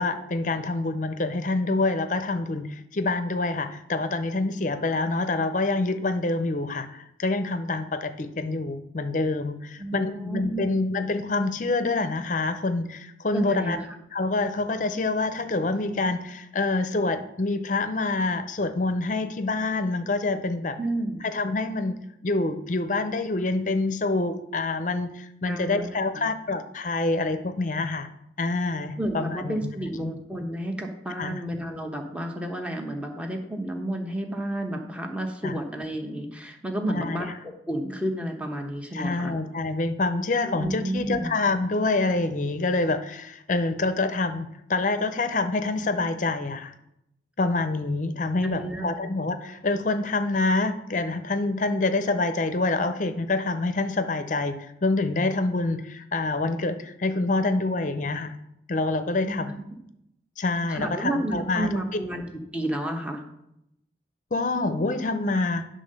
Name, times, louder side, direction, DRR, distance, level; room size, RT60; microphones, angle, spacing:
voice 1, 0.0-13.8 14.1-20.8 21.2-22.0 22.2-28.1 28.4-30.1 31.2-31.4 35.4-35.6 36.9-37.2 38.9-46.7 47.4-58.3 58.7-59.5 60.4-61.7 64.3-65.7, left 3 dB, 45° left, 10 dB, 0.6 m, -26 dB
voice 2, 9.8-10.7 13.3-13.8 20.8-21.2 25.4-26.3 29.0-39.3 40.4-41.3 48.4-49.1 59.2-59.6 60.7-62.2 62.5-63.2, right 1 dB, 5° right, 3 dB, 0.9 m, -31 dB
10.5 x 3.7 x 6.5 m, 0.81 s
head